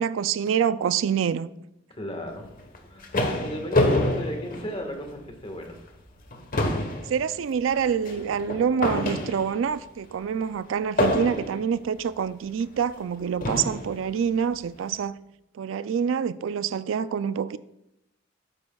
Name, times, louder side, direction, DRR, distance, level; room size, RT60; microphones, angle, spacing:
voice 1, 0.0-1.5 7.1-15.1 15.5-17.6, right 7 dB, 80° right, 0.3 m, -26 dB
voice 2, 1.9-2.5 2.9-5.8, equal, 30° left, 1.5 m, -35 dB
sound 1, 2.6-5.3 5.7-5.9 6.2-9.7 11.0-11.7 12.6-12.7 13.4-13.9, left 1 dB, 45° left, 1.2 m, -27 dB
12.5 x 9.5 x 2.3 m
head